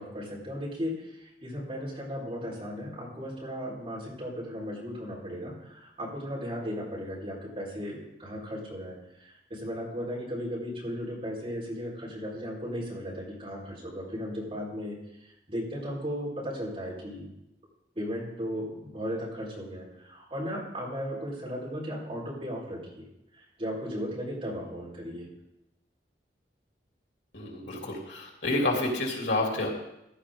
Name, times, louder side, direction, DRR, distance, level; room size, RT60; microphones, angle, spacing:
voice 1, 0.0-17.3 17.9-23.1 23.3-25.3, equal, 30° right, -6 dB, 4.9 m, -36 dB
voice 2, 27.3-29.7, left 2 dB, 90° left, 0 dB, 3.1 m, -29 dB
15.5 x 11.0 x 3.9 m, 0.86 s
head